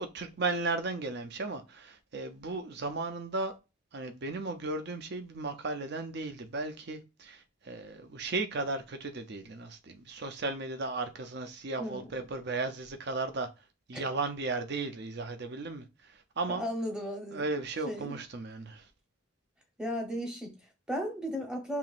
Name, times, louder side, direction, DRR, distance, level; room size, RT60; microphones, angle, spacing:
voice 1, 0.0-3.5 3.9-13.5 13.9-16.6 17.3-18.9, right 3 dB, 50° right, 0.5 m, -35 dB
voice 2, 11.8-12.1 13.9-14.0 16.5-17.4 17.8-18.2 19.8-21.8, equal, 5° right, 0.8 m, -35 dB
5.7 x 2.9 x 2.5 m
head